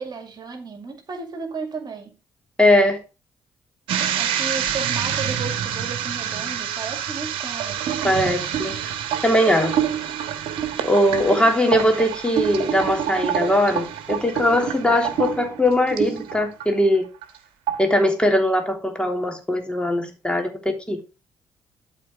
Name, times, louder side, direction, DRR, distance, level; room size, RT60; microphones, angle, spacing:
voice 1, 0.0-2.2 4.1-7.8, right 4 dB, 45° right, 5 dB, 2.1 m, -34 dB
voice 2, 2.6-3.0 8.0-8.7 9.2-9.8 10.8-17.0 17.8-21.0, left 1 dB, 10° left, 3 dB, 3.1 m, -20 dB
sound 1, 3.9-16.7 17.0-17.4 17.7-18.0, right 9 dB, 65° right, 1.2 m, -27 dB
12.0 x 4.5 x 5.0 m, 0.30 s
hypercardioid pair, 45°, 10 cm